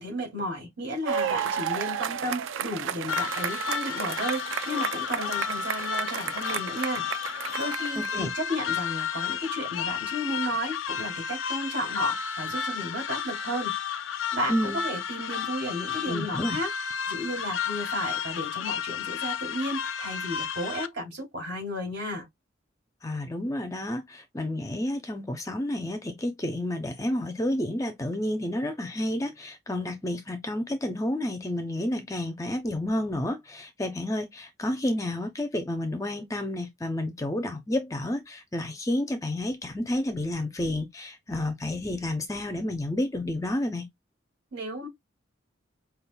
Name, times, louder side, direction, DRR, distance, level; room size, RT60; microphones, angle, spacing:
voice 1, 0.0-7.1 7.6-13.7 14.3-16.7 17.1-22.3 44.5-44.9, equal, 60° right, 2.3 m, -33 dB
sound 1, 1.0-8.4 9.3-9.4, right 8 dB, 80° right, 0.4 m, -32 dB
sound 2, 3.1-20.9, left 7 dB, 85° left, 0.4 m, -32 dB
voice 2, 8.0-8.3 14.5-14.8 16.1-16.6 23.0-43.9, left 1 dB, 15° left, 0.4 m, -30 dB
5.3 x 2.3 x 2.2 m
head